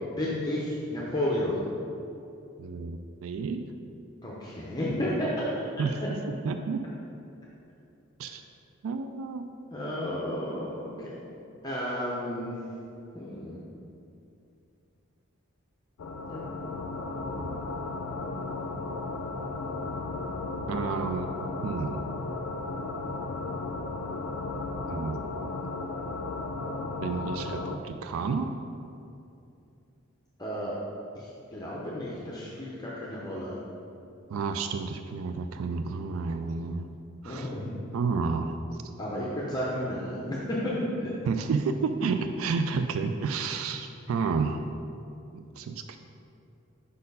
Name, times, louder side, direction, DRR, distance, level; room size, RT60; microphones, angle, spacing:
voice 1, 0.1-1.7 4.2-5.4 9.7-11.1 11.6-12.5 13.1-13.6 16.3-16.4 30.4-30.7 31.1-33.6 37.2-37.7 39.0-40.7 41.0-41.1, left 1 dB, 20° left, -6 dB, 0.6 m, -32 dB
voice 2, 2.6-3.6 5.8-6.2 6.4-6.8 8.2-8.4 8.8-9.5 17.4-17.7 20.7-21.3 21.6-22.0 24.9-25.2 27.0-28.6 34.3-36.9 37.2-37.5 37.9-38.6 41.2-44.7 45.3-46.0, right 4 dB, 80° right, 8 dB, 0.3 m, -30 dB
sound 1, 16.0-27.8, left 3 dB, 85° left, 0.5 m, -35 dB
5.2 x 4.3 x 5.4 m, 2.7 s
head